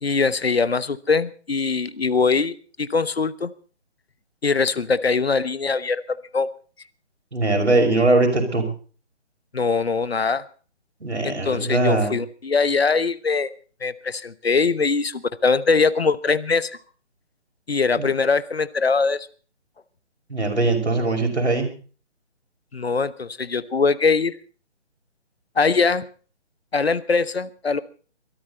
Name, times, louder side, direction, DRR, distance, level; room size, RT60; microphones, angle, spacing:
voice 1, 0.0-3.5 4.4-6.5 9.5-10.4 11.2-13.5 13.8-16.7 17.7-19.3 22.7-24.3 25.6-26.1 26.7-27.8, left 4 dB, 60° left, 16 dB, 1.1 m, -22 dB
voice 2, 7.3-8.7 11.0-12.2 18.0-18.1 20.3-21.7, right 2 dB, 70° right, 3 dB, 6.1 m, -21 dB
22.5 x 13.0 x 4.1 m, 0.40 s
figure-of-eight pair, 145°, 35 cm